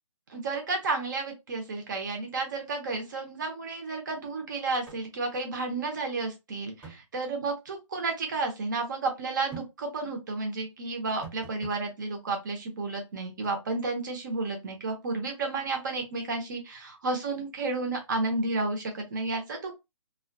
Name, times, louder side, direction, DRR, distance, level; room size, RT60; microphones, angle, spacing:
voice 1, 0.3-19.7, right 3 dB, 35° right, 4 dB, 0.7 m, -32 dB
sound 1, 4.9-5.0 5.3-5.4 6.8-7.0 9.5-9.7 11.2-11.8 13.4-13.6, right 5 dB, 10° right, 0.9 m, -45 dB
2.4 x 2.2 x 2.4 m, 0.22 s
hypercardioid pair, 165°, 17 cm